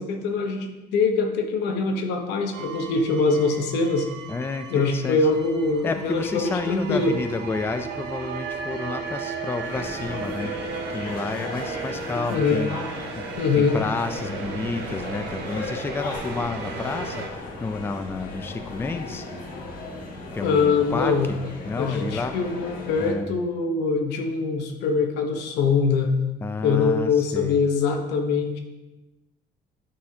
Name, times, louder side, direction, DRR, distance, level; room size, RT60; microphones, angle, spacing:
voice 1, 0.0-4.1 4.7-7.2 12.3-12.6 13.4-13.8 20.4-21.3 21.8-26.1 26.6-28.6, left 4 dB, 85° left, 4 dB, 0.8 m, -23 dB
sound 1, 2.5-17.3, right 6 dB, 80° right, 0.6 m, -36 dB
voice 2, 4.3-5.2 5.8-12.8 13.1-19.3 20.3-21.4 21.6-22.4 23.0-23.3 26.4-27.6, left 4 dB, 15° left, 8 dB, 0.3 m, -30 dB
sound 2, 9.6-23.1, left 2 dB, 60° left, 1.4 m, -36 dB
8.7 x 4.1 x 2.8 m, 1.1 s
cardioid pair, 110°, 17 cm